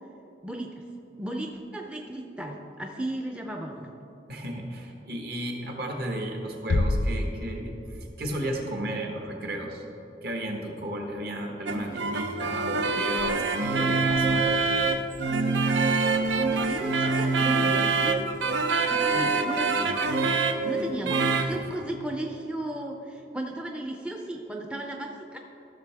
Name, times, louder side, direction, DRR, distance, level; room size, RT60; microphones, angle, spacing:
voice 1, 0.4-0.8 1.2-3.9 11.8-12.0 16.3-18.3 18.9-19.9 20.6-25.4, right 1 dB, 5° right, 2 dB, 0.4 m, -35 dB
voice 2, 4.3-9.8 10.2-14.5 21.5-21.6, right 1 dB, 55° right, 2 dB, 1.2 m, -34 dB
sound 1, 6.7-8.3, left 2 dB, 85° left, 0.5 m, -27 dB
sound 2, 11.7-21.6, right 3 dB, 85° right, 0.6 m, -25 dB
14.0 x 6.5 x 3.4 m, 2.9 s
head